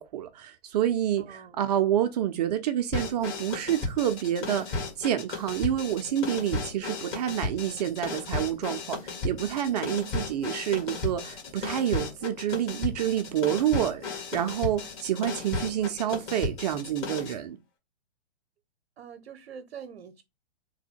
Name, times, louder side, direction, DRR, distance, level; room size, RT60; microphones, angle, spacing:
voice 1, 0.0-17.6, right 10 dB, 40° right, 0.4 m, -28 dB
voice 2, 1.1-1.6 19.0-20.2, right 7 dB, 75° right, 0.7 m, -44 dB
sound 1, 2.9-17.4, left 3 dB, 40° left, 1.8 m, -34 dB
3.4 x 2.2 x 4.3 m
hypercardioid pair, 130°, 33 cm